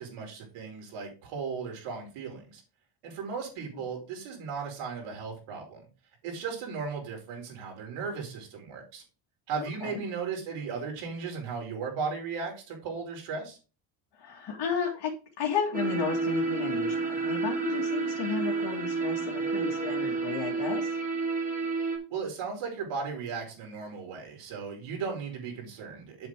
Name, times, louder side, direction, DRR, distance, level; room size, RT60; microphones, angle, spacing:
voice 1, 0.0-2.6 3.0-5.9 6.2-9.0 9.5-13.6 22.1-26.3, right 5 dB, 90° right, 0 dB, 5.0 m, -36 dB
voice 2, 9.6-10.0 14.1-20.9, left 6 dB, 50° left, -2 dB, 2.4 m, -33 dB
sound 1, 15.7-22.0, right 4 dB, 15° right, 3.0 m, -30 dB
7.8 x 7.8 x 3.7 m, 0.33 s
cardioid pair, 140°, 49 cm